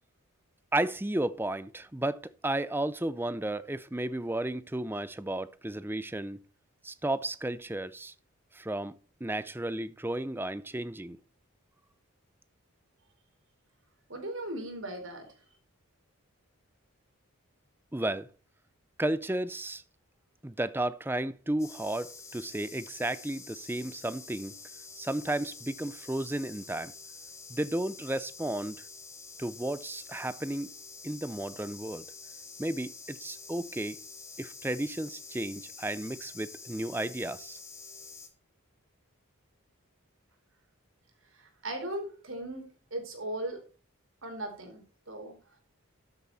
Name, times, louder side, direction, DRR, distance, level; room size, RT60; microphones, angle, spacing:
voice 1, 0.7-6.4 6.8-8.1 8.5-11.2 17.9-18.3 19.0-19.8 20.4-24.5 24.9-26.9 27.5-28.8 29.4-30.7 31.0-32.0 32.6-34.0 34.4-37.6, right 1 dB, 10° right, 0.5 m, -33 dB
voice 2, 14.1-15.3 41.3-42.6 42.9-43.6 44.2-45.3, right 1 dB, 65° right, 4.2 m, -38 dB
sound 1, 21.6-38.3, left 4 dB, 15° left, 1.7 m, -47 dB
13.0 x 7.9 x 4.1 m
head